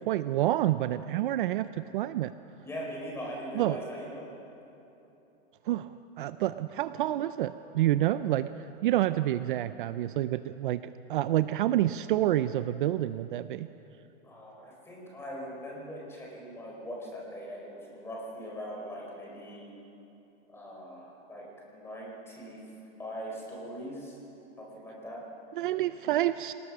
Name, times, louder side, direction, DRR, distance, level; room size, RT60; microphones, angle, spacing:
voice 1, 0.1-2.3 3.5-3.8 5.7-10.8 11.1-13.7 25.6-26.5, right 13 dB, 55° right, 13 dB, 0.5 m, -28 dB
voice 2, 2.6-4.2 14.2-19.7 20.5-22.6 23.0-24.2 24.6-25.2, equal, 10° left, -3 dB, 4.5 m, -41 dB
27.0 x 19.5 x 6.1 m, 3.0 s
supercardioid pair, 170°, 32 cm